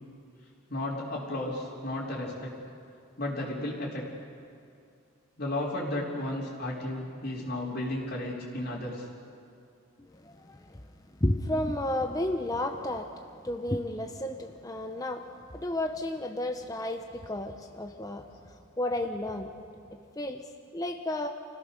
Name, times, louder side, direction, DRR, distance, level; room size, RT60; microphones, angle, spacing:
voice 1, 0.7-2.6 3.2-4.0 5.4-9.1, left 1 dB, 50° left, -8 dB, 3.5 m, -33 dB
voice 2, 10.1-10.8 11.2-13.1 13.4-15.2 15.5-19.5 20.2-20.4 20.7-21.3, left 1 dB, 15° left, 4 dB, 0.8 m, -32 dB
29.0 x 16.5 x 6.7 m, 2.4 s
head